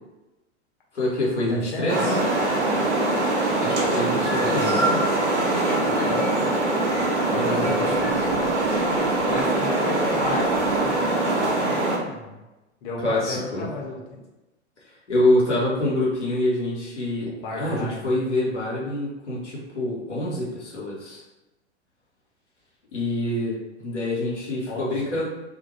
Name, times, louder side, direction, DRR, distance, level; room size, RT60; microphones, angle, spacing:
voice 1, 0.9-2.2 3.6-4.9 5.9-6.1 7.3-8.1 13.0-13.7 14.8-21.2 22.9-25.3, left 1 dB, 85° left, -6 dB, 0.8 m, -26 dB
voice 2, 1.5-2.2 4.3-5.0 5.8-6.7 7.3-8.3 9.3-12.4 12.8-14.2 17.3-18.1 24.7-25.2, left 3 dB, 45° left, -2 dB, 0.8 m, -32 dB
sound 1, 1.9-12.0, right 2 dB, 85° right, 0.6 m, -23 dB
2.4 x 2.1 x 3.0 m, 1.0 s
figure-of-eight pair, 90°, 34 cm